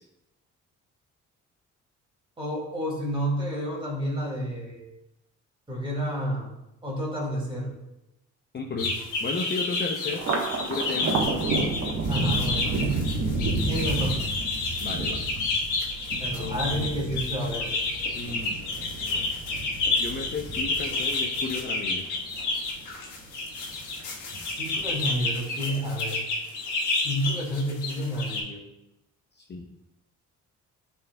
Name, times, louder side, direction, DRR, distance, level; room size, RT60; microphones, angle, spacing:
voice 1, 2.4-4.9 5.7-6.5 6.8-7.7 12.1-12.9 13.7-14.2 16.2-17.7 24.5-26.2 26.9-28.6, equal, 15° right, -2 dB, 2.4 m, -30 dB
voice 2, 8.5-10.2 10.7-11.2 14.8-15.3 16.4-16.9 18.1-18.6 20.0-22.0 29.5-29.6, left 4 dB, 35° left, 1 dB, 0.7 m, -33 dB
sound 1, 8.8-28.4, left 3 dB, 85° left, 1.4 m, -30 dB
Thunder, 10.1-22.8 23.2-24.0 24.3-25.2, right 3 dB, 60° right, 1.2 m, -31 dB
11.0 x 4.4 x 2.3 m, 0.90 s
cardioid pair, 90°, 30 cm